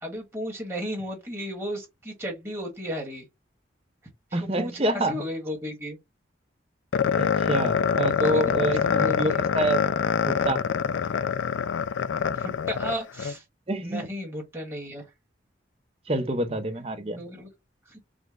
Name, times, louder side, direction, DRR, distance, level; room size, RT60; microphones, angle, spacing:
voice 1, 0.0-3.2 4.3-6.0 8.1-9.5 12.3-13.4 13.8-15.0 17.2-17.5 17.9-18.0, equal, 15° right, 1.4 m, -34 dB
voice 2, 4.3-5.2 7.2-10.6 13.7-14.1 16.1-17.2, right 1 dB, 30° right, 0.7 m, -27 dB
sound 1, 6.9-13.3, left 6 dB, 85° left, 0.4 m, -25 dB
5.1 x 2.2 x 3.7 m
head